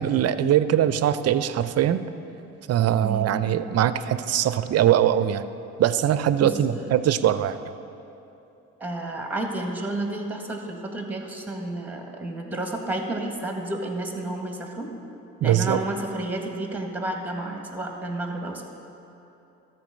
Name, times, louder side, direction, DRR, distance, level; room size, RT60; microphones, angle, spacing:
voice 1, 0.0-2.0 2.7-5.4 5.8-7.7 15.4-15.8, right 11 dB, 50° right, 13 dB, 0.5 m, -22 dB
voice 2, 3.0-3.5 6.4-6.9 8.8-14.9 15.4-18.6, right 2 dB, 5° right, 2 dB, 1.6 m, -31 dB
13.0 x 4.5 x 6.3 m, 2.9 s
supercardioid pair, 65°, 33 cm